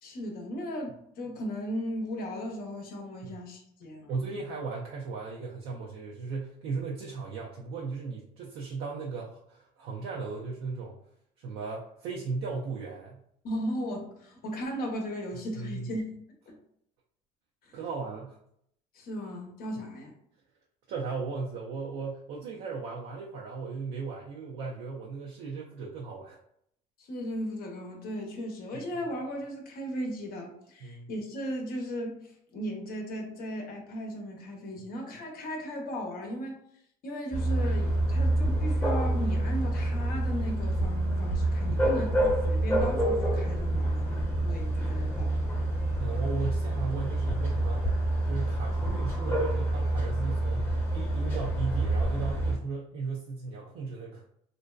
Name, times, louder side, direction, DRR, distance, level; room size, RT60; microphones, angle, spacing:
voice 1, 0.0-4.2 13.4-16.0 16.5-16.6 17.6-17.8 18.9-20.1 27.0-32.1 32.5-36.6 37.0-45.6, equal, 55° left, 2 dB, 0.7 m, -36 dB
voice 2, 4.1-10.9 11.4-13.2 15.6-15.9 17.7-18.4 20.9-26.4 30.8-31.1 41.7-42.0 46.0-47.9 48.2-54.2, right 4 dB, 65° right, -3 dB, 0.5 m, -36 dB
sound 1, 37.3-52.6, right 1 dB, 15° left, 0.8 m, -27 dB
2.6 x 2.1 x 2.2 m, 0.70 s
supercardioid pair, 85°, 18 cm